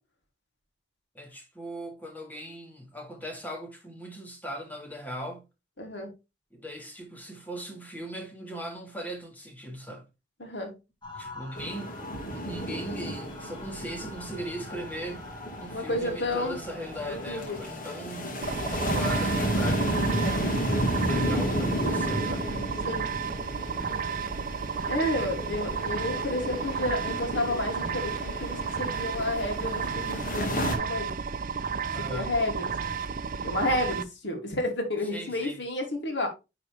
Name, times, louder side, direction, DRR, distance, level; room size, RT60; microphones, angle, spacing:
voice 1, 1.1-5.4 6.5-10.1 11.1-12.0 12.3-15.2 15.6-18.3 18.7-20.0 21.0-22.5 31.9-32.4 35.1-35.6, equal, 10° left, 1.8 m, -39 dB
voice 2, 5.8-6.1 10.4-10.7 15.7-16.6 17.1-17.6 20.1-20.4 22.9-23.1 24.9-31.1 32.0-32.7 33.4-36.3, left 1 dB, 75° left, 2.6 m, -31 dB
sound 1, 11.0-20.0, left 2 dB, 25° left, 1.7 m, -44 dB
sound 2, 11.5-30.8, equal, 50° left, 2.1 m, -32 dB
sound 3, 18.4-34.0, right 6 dB, 50° right, 0.6 m, -32 dB
9.8 x 4.1 x 3.4 m
head